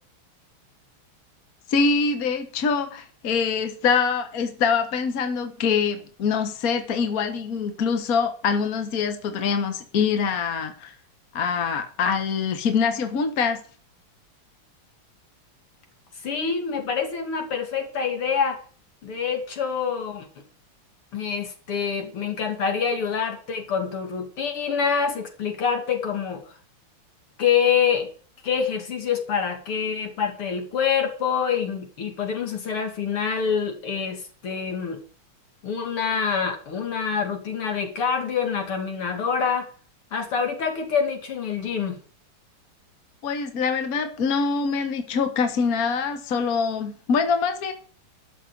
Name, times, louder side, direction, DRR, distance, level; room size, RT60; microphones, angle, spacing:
voice 1, 1.7-10.9 11.3-13.6 43.2-47.7, left 5 dB, 45° left, 7 dB, 1.7 m, -24 dB
voice 2, 16.2-18.6 19.0-20.3 21.1-26.4 27.4-28.1 28.4-35.0 35.6-39.7 40.1-42.0, left 6 dB, 80° left, 4 dB, 3.3 m, -26 dB
12.5 x 6.6 x 8.7 m, 0.42 s
omnidirectional pair, 2.4 m